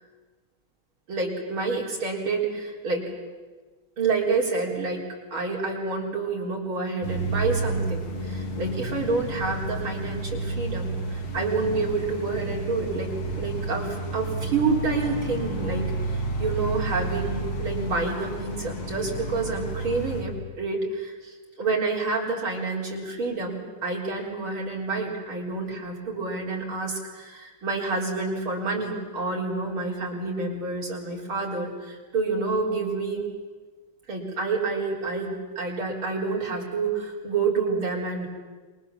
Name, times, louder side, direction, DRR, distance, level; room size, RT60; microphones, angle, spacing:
voice 1, 1.1-3.1 4.0-5.0 5.3-13.1 13.4-33.2 34.1-38.3, right 4 dB, 80° right, -2 dB, 5.0 m, -28 dB
sound 1, 7.0-20.2, right 2 dB, 85° left, 3.3 m, -31 dB
28.0 x 23.5 x 7.3 m, 1.3 s
omnidirectional pair, 2.3 m